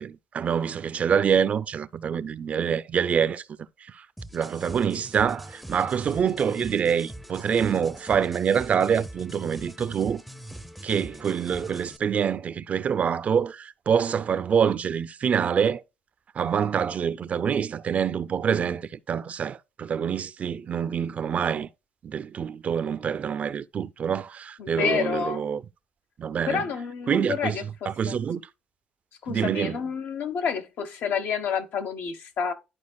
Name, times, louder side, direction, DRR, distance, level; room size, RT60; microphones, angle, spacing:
voice 1, 0.0-3.4 3.9-4.1 4.3-10.2 10.8-15.8 16.3-21.7 22.0-25.6 26.2-26.6 27.1-27.6 27.9-28.4 29.3-29.8, right 7 dB, 45° right, 0.5 m, -26 dB
sound 1, 4.2-12.0, right 1 dB, ahead, 0.6 m, -42 dB
voice 2, 24.6-25.4 26.5-28.2 29.2-32.5, left 7 dB, 70° left, 1.1 m, -29 dB
11.5 x 4.7 x 2.3 m
cardioid pair, 110°, 3 cm